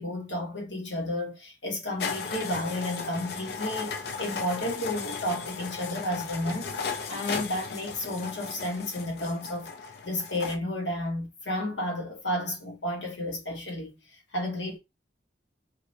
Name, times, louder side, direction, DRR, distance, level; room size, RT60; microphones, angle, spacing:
voice 1, 0.0-3.9 4.2-6.8 7.1-14.8, left 1 dB, 85° left, 1.4 m, -32 dB
sound 1, 2.0-10.6, left 5 dB, 60° left, 0.5 m, -36 dB
3.2 x 2.7 x 2.8 m
head